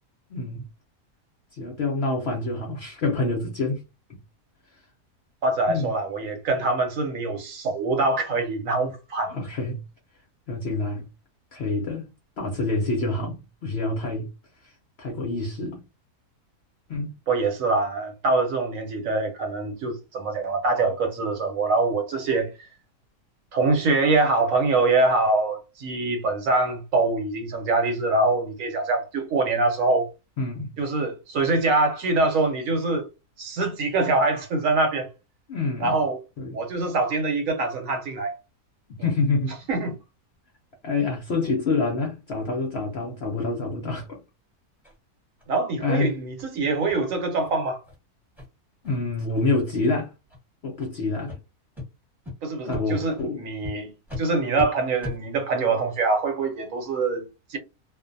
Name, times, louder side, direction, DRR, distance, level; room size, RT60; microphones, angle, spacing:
voice 1, 0.3-0.6 1.5-3.8 4.1-4.2 5.7-5.9 9.3-9.8 10.5-11.1 11.5-12.1 12.4-13.4 13.6-14.3 14.6-14.7 15.0-15.8 16.9-17.1 30.4-30.7 35.5-35.9 36.4-36.6 38.9-39.6 40.8-44.2 45.8-46.2 48.8-50.1 50.6-51.4 52.6-53.4, left 3 dB, 65° left, 0.6 m, -27 dB
voice 2, 5.4-9.3 17.3-22.7 23.5-30.1 30.8-33.1 33.4-35.1 35.8-36.2 36.5-38.3 39.0-39.1 39.7-40.0 45.5-47.8 52.4-53.9 54.2-57.2 57.5-57.6, right 3 dB, 65° right, 1.0 m, -24 dB
sound 1, 44.8-45.0 45.4-45.5 45.9-46.0 46.4-46.5 46.9-47.0 47.3-47.5 47.8-48.0 48.4-48.5 48.8-49.0 49.3-49.7 50.2-50.4 50.8-50.9 51.3-51.4 51.7-51.9 52.2-52.3 52.7-52.8 53.2-53.3 53.6-53.7 54.1-54.2 54.5-54.7 55.0-55.2, left 3 dB, ahead, 0.8 m, -37 dB
2.5 x 2.1 x 2.5 m
omnidirectional pair, 1.6 m